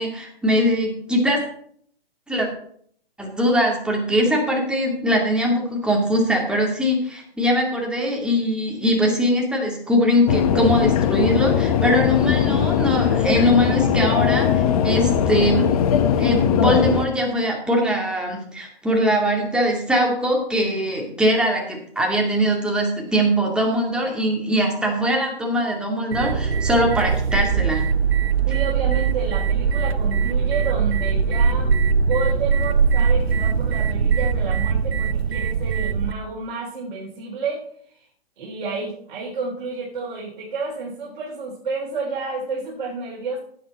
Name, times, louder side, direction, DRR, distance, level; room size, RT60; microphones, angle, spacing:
voice 1, 0.0-1.4 2.3-2.5 3.2-15.8 16.2-27.8, equal, 5° right, -1 dB, 2.4 m, -21 dB
sound 1, 10.3-17.1, left 8 dB, 35° left, 1.1 m, -20 dB
sound 2, 26.1-36.1, right 6 dB, 80° right, 1.2 m, -21 dB
voice 2, 28.5-38.1 38.4-43.4, right 4 dB, 50° right, -4 dB, 3.8 m, -30 dB
16.0 x 9.1 x 4.2 m, 0.64 s
hypercardioid pair, 145°, 31 cm